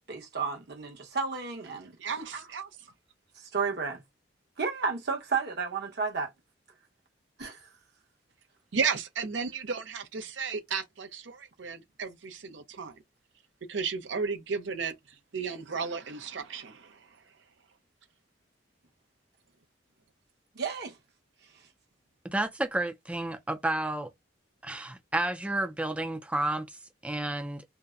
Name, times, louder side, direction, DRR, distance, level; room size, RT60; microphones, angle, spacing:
voice 1, 0.1-1.9 2.3-2.4 3.4-4.0 4.6-6.3 7.4-7.7 20.5-21.0, right 5 dB, 60° right, 1.0 m, -32 dB
voice 2, 2.0-2.7 8.7-13.0 13.7-14.9 15.3-17.1, right 5 dB, 75° right, 0.6 m, -34 dB
voice 3, 22.2-24.1 24.6-27.6, right 1 dB, 5° right, 0.4 m, -31 dB
2.6 x 2.1 x 2.3 m
head